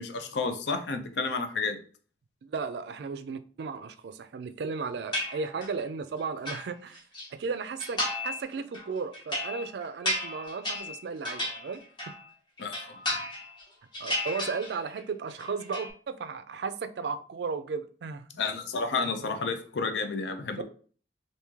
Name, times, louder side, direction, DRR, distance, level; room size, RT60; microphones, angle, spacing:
voice 1, 0.0-1.8 12.6-13.2 18.4-20.6, left 4 dB, 75° left, 0.5 m, -31 dB
voice 2, 2.4-7.0 7.3-11.8 14.0-18.2 20.6-20.7, right 5 dB, 65° right, 0.3 m, -35 dB
sound 1, 5.1-5.8 6.2-7.3 7.8-8.4 8.7-12.3 12.6-13.6 13.9-15.0 15.3-15.9, left 1 dB, 25° left, 1.0 m, -34 dB
3.0 x 2.7 x 3.5 m
head